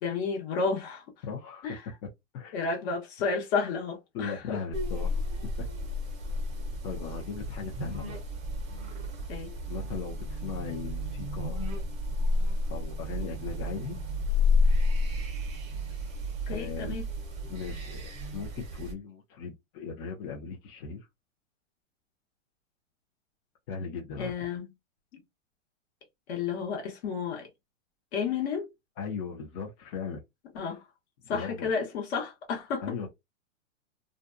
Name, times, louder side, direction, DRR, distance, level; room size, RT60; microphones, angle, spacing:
voice 1, 0.0-1.0 1.6-1.8 2.5-4.6 9.3-9.6 16.5-17.0 24.2-24.6 25.1-25.2 26.3-27.5 28.1-28.7 30.5-30.8 31.3-32.9, left 5 dB, 50° left, 1.1 m, -31 dB
voice 2, 1.2-1.8 2.3-2.6 4.1-5.2 6.8-8.2 9.7-11.7 12.7-14.0 16.5-17.0 17.5-21.1 23.7-24.3 29.0-30.2 31.2-31.7 32.8-33.1, left 5 dB, 30° left, 0.7 m, -38 dB
sound 1, 4.7-18.9, left 2 dB, 15° right, 0.7 m, -31 dB
2.5 x 2.3 x 2.5 m
hypercardioid pair, 135°, 40 cm